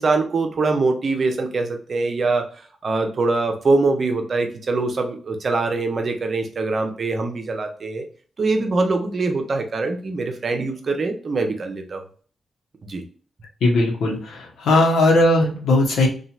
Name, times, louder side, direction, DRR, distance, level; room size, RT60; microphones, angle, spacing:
voice 1, 0.0-2.5 2.8-8.0 8.4-12.0 12.8-13.0, right 3 dB, 55° right, 5 dB, 0.7 m, -23 dB
voice 2, 13.6-16.1, left 2 dB, 80° left, -1 dB, 0.9 m, -18 dB
2.9 x 2.4 x 2.3 m, 0.42 s
hypercardioid pair, 40°, 0 cm